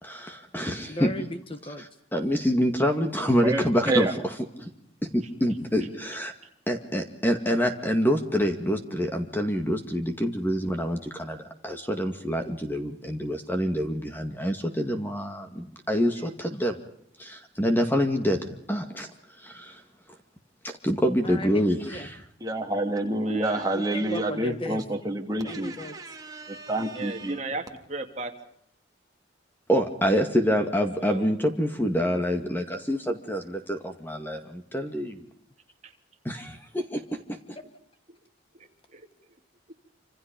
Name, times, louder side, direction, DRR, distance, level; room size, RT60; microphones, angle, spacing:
voice 1, 0.0-1.1 2.1-4.1 4.6-4.7 5.1-6.3 6.7-16.2 16.6-16.7 17.2-19.1 19.4-19.8 20.8-22.1 29.7-35.3 36.9-37.0, equal, 10° left, 5 dB, 2.1 m, -26 dB
voice 2, 0.9-1.9 21.2-22.1 23.7-24.8 25.4-26.0, left 1 dB, 25° left, 8 dB, 1.6 m, -36 dB
voice 3, 3.4-4.1 22.4-27.4, right 1 dB, 20° right, 2 dB, 3.1 m, -28 dB
voice 4, 23.0-23.7 24.0-24.2 26.9-28.4 31.0-31.4 35.8-35.9 38.1-38.2 38.5-39.4, right 2 dB, 35° right, 4 dB, 2.9 m, -38 dB
27.5 x 27.0 x 5.3 m, 0.69 s
head